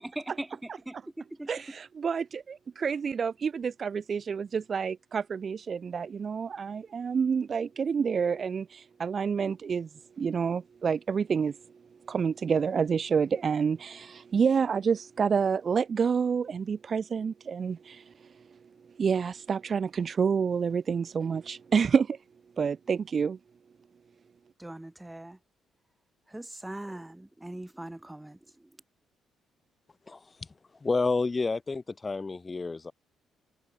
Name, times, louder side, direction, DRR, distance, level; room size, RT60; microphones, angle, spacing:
voice 1, 0.2-1.5 24.6-25.4 26.3-28.4, right 1 dB, 10° right, 7.7 m, -40 dB
voice 2, 1.5-9.9 10.2-11.6 12.0-18.3 19.0-22.2 22.6-23.4, right 6 dB, 45° right, 1.3 m, -28 dB
voice 3, 30.1-30.5 30.8-32.9, left 3 dB, 25° left, 1.5 m, -30 dB
cardioid pair, 90°, 0 cm